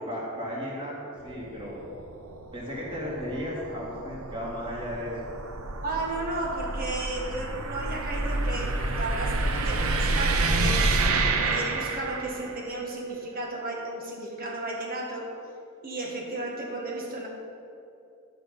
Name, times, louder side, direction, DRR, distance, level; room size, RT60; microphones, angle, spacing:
voice 1, 0.0-0.9 1.2-1.8 2.5-5.1, equal, 25° right, -6 dB, 2.6 m, -34 dB
sound 1, 1.2-12.6, right 3 dB, 75° right, 0.8 m, -29 dB
voice 2, 5.8-10.8 11.2-15.3 15.8-17.3, right 2 dB, 45° right, -1 dB, 1.3 m, -34 dB
12.5 x 5.9 x 5.3 m, 2.7 s
head